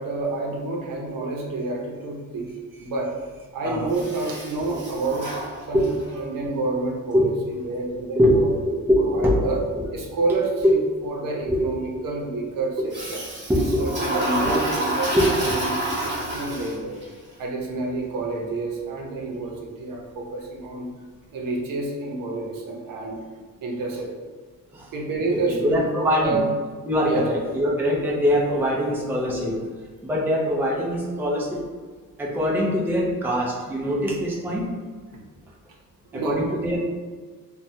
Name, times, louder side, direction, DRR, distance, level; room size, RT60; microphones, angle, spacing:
voice 1, 0.0-2.5 2.8-3.1 3.5-5.3 5.7-7.3 7.6-8.5 9.0-9.6 9.9-10.8 11.0-13.2 13.5-15.1 15.4-15.6 16.0-17.1 17.4-20.9 21.3-23.2 23.6-24.1 24.9-26.4 27.0-27.3 36.1-36.4, right 3 dB, 70° right, -2 dB, 0.7 m, -29 dB
Toilet flush, 3.9-6.1 12.9-17.0, right 1 dB, 30° right, 0.9 m, -28 dB
voice 2, 8.2-9.4 10.6-10.7 11.5-11.7 13.5-13.8 14.4-14.6 15.1-15.5 24.7-24.9 25.3-26.4 26.8-29.6 30.0-31.6 32.2-34.7 36.1-36.8, equal, 5° right, -4 dB, 0.5 m, -22 dB
3.0 x 2.2 x 2.6 m, 1.5 s
cardioid pair, 125°, 34 cm